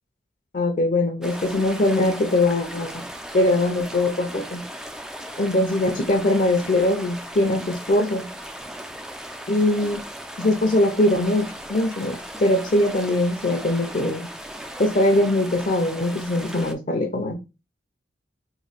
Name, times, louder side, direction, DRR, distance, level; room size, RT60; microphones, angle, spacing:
voice 1, 0.5-3.0 3.3-4.6 5.4-8.3 9.5-10.0 10.4-14.3 14.8-17.3, left 1 dB, 50° left, 0.6 m, -21 dB
sound 1, 1.2-16.7, equal, 5° right, 0.3 m, -37 dB
3.1 x 2.2 x 4.1 m
head